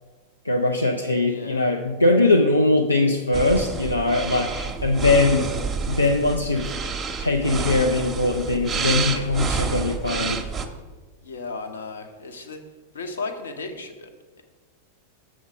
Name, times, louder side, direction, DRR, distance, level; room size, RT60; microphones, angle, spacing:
voice 1, 0.4-5.5 5.9-6.7 7.2-10.4, left 2 dB, 85° left, 2 dB, 0.5 m, -21 dB
voice 2, 1.2-1.6 11.2-12.6 12.9-14.1 14.4-14.5, left 3 dB, 65° left, 6 dB, 0.9 m, -35 dB
sound 1, 3.3-10.7, right 5 dB, 15° right, 0.7 m, -29 dB
7.1 x 6.2 x 5.0 m, 1.4 s
figure-of-eight pair, 90°, 0 cm